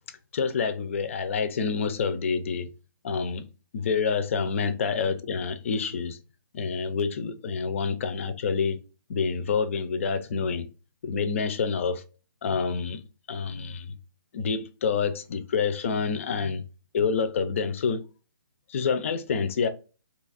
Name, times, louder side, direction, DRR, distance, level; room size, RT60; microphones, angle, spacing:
voice 1, 0.3-2.7 3.0-3.5 3.7-6.2 6.5-8.8 9.1-10.7 11.0-12.0 12.4-13.0 13.3-14.0 14.3-16.6 16.9-18.0 18.7-19.7, left 5 dB, 35° left, 0.5 m, -27 dB
2.8 x 2.4 x 4.0 m
hypercardioid pair, 165°, 11 cm